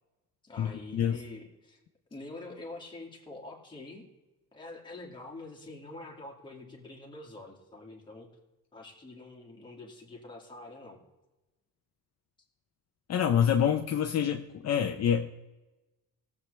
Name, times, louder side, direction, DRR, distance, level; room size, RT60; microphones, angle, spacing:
voice 1, 0.4-1.8 2.1-4.1 4.5-8.3 8.7-11.0, left 2 dB, 15° left, -1 dB, 2.1 m, -46 dB
voice 2, 13.1-15.3, left 8 dB, 50° left, 4 dB, 0.7 m, -26 dB
21.0 x 7.7 x 3.3 m, 1.1 s
cardioid pair, 175°, 34 cm